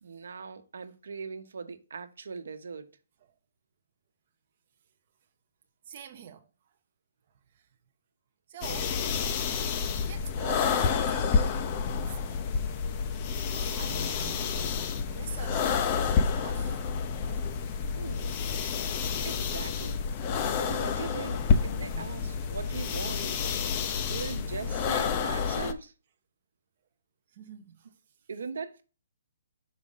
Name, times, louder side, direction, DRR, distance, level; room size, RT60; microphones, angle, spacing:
voice 1, 0.0-2.9 17.9-18.4 19.2-20.0 20.6-23.4 24.0-25.9 28.3-28.8, right 5 dB, 70° right, 0.9 m, -40 dB
voice 2, 5.9-6.5 7.5-7.6 8.5-9.0 10.1-12.4 13.5-14.6 15.1-16.8 24.0-24.1 27.3-27.9, right 8 dB, 30° right, 0.5 m, -45 dB
sound 1, 8.6-25.7, left 6 dB, 20° left, 0.5 m, -29 dB
6.0 x 5.0 x 3.9 m
hypercardioid pair, 175°, 0 cm